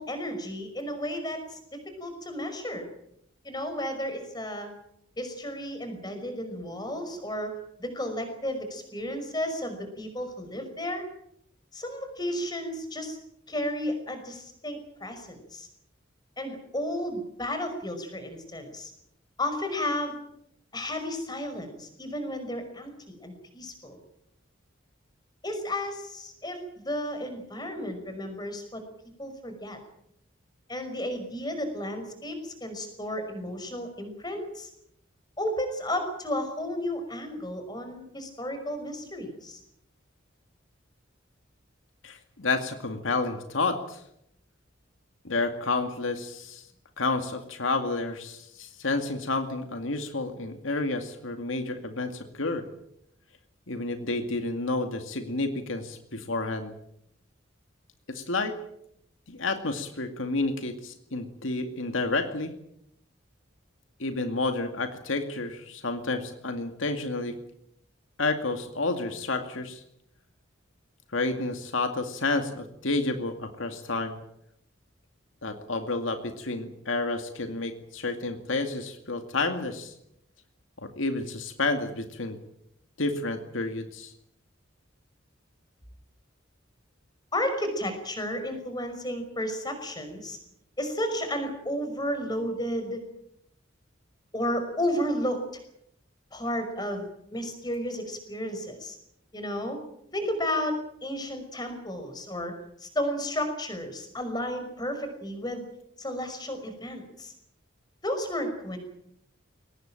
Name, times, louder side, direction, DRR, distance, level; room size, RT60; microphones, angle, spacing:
voice 1, 0.0-2.9 3.4-4.7 5.2-11.0 11.7-13.2 13.5-15.7 16.4-18.9 19.4-20.1 20.7-24.0 25.4-28.8 29.2-29.8 30.7-34.7 35.4-39.6 87.3-90.4 90.8-93.0 94.3-95.4 96.3-99.0 99.3-99.8 100.1-105.7 106.0-107.3 108.0-108.8, left 1 dB, 20° left, 7 dB, 5.6 m, -33 dB
voice 2, 42.0-44.0 45.2-46.7 47.0-52.6 53.7-56.7 58.1-58.5 59.3-62.5 64.0-67.4 68.2-69.8 71.1-74.2 75.4-79.9 80.8-82.4 83.0-84.1, left 3 dB, 75° left, 6 dB, 2.3 m, -30 dB
22.5 x 19.0 x 8.9 m, 0.75 s
head